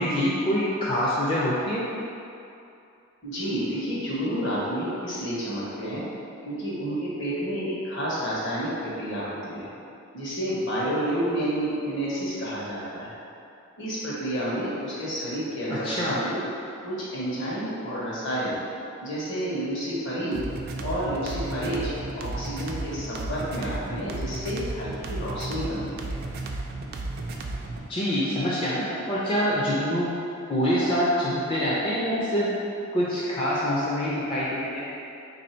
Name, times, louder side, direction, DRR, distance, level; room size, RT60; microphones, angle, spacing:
voice 1, 0.0-1.8 15.8-16.2 27.9-30.1 30.5-32.5 32.9-34.9, equal, 25° left, -9 dB, 0.4 m, -25 dB
voice 2, 3.2-6.0 6.4-9.7 10.1-13.1 13.8-16.4 16.8-18.6 19.0-20.4 20.8-26.2, equal, 60° left, -8 dB, 1.1 m, -30 dB
sound 1, 20.3-27.9, right 2 dB, 45° right, 0.3 m, -34 dB
3.3 x 2.7 x 4.3 m, 2.7 s
head